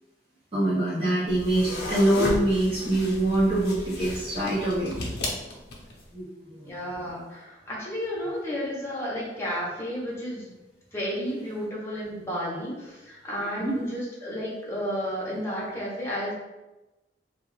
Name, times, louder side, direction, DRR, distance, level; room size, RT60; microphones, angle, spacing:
voice 1, 0.5-5.0 6.1-6.7 13.6-13.8, right 1 dB, 30° right, -12 dB, 0.9 m, -24 dB
sound 1, 1.3-6.0, left 2 dB, 70° left, 0.6 m, -34 dB
voice 2, 6.6-10.5 10.9-16.3, equal, 15° left, -6 dB, 0.8 m, -32 dB
2.3 x 2.3 x 3.2 m, 1.0 s
head